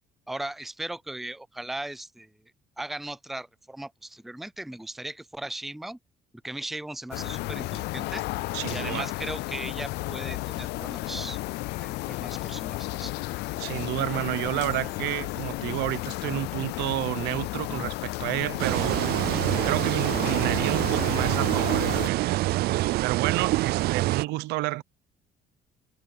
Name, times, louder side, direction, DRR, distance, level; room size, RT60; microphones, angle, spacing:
voice 1, 0.3-2.3 2.8-6.0 6.4-8.2 8.7-11.4 11.8-13.1, right 1 dB, ahead, 0.4 m, -37 dB
sound 1, 7.1-22.1, left 20 dB, 80° left, 0.4 m, -33 dB
voice 2, 8.5-9.1 13.6-19.0 19.6-22.4 23.0-24.8, right 18 dB, 90° right, 0.8 m, -30 dB
sound 2, 18.6-24.2, right 17 dB, 70° right, 0.4 m, -25 dB
cardioid pair, 110°, 17 cm